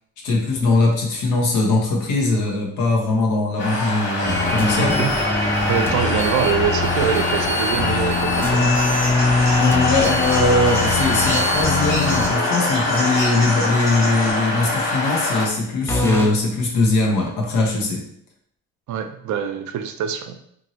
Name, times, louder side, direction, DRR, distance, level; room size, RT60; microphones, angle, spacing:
voice 1, 0.2-5.1 9.6-18.0, left 2 dB, 90° left, -1 dB, 0.9 m, -21 dB
sound 1, 3.6-15.5, left 2 dB, 40° left, 1.4 m, -23 dB
sound 2, 4.2-14.9 15.9-16.3, left 2 dB, 10° left, 0.4 m, -24 dB
voice 2, 4.8-5.1 5.7-9.1 18.9-20.4, right 8 dB, 70° right, 7 dB, 0.5 m, -24 dB
sound 3, 8.5-14.3, equal, 65° left, 1.2 m, -33 dB
3.0 x 2.6 x 2.8 m, 0.68 s
cardioid pair, 90°, 30 cm